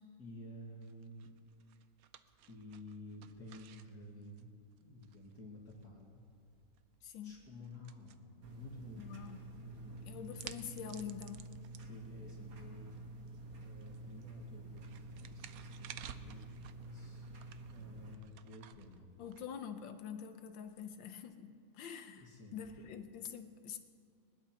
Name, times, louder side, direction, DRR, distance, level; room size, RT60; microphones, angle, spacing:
voice 1, 0.2-1.3 2.5-4.5 4.8-6.2 7.2-9.2 9.5-10.4 11.8-13.3 13.6-17.3 17.7-19.1 22.2-22.9, left 2 dB, 60° left, -4 dB, 2.4 m, -52 dB
sound 1, 0.8-20.1, right 10 dB, 70° right, 0.9 m, -57 dB
voice 2, 7.0-7.4 8.9-9.4 10.0-11.5 19.2-23.8, left 8 dB, 85° left, 7 dB, 1.6 m, -46 dB
sound 2, 8.4-18.1, right 2 dB, 50° right, 1.5 m, -49 dB
21.0 x 20.0 x 2.9 m, 2.2 s
omnidirectional pair, 2.0 m